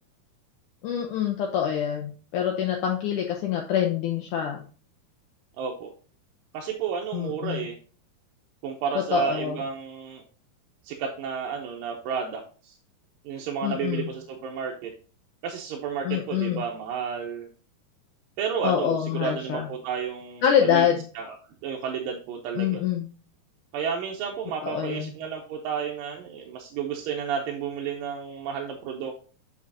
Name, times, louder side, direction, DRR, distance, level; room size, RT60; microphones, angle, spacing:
voice 1, 0.8-4.6 7.1-7.7 9.0-9.6 13.6-14.1 16.1-16.6 18.6-19.7 20.4-21.0 22.6-23.1 24.6-25.1, left 9 dB, 90° left, 2 dB, 1.8 m, -26 dB
voice 2, 5.6-5.9 6.5-7.8 8.6-10.2 10.8-12.8 13.2-14.9 15.4-17.5 18.4-20.9 21.2-21.4 21.6-22.8 23.7-29.1, right 6 dB, 75° right, 0 dB, 2.2 m, -31 dB
7.4 x 6.2 x 2.8 m, 0.38 s
omnidirectional pair, 4.5 m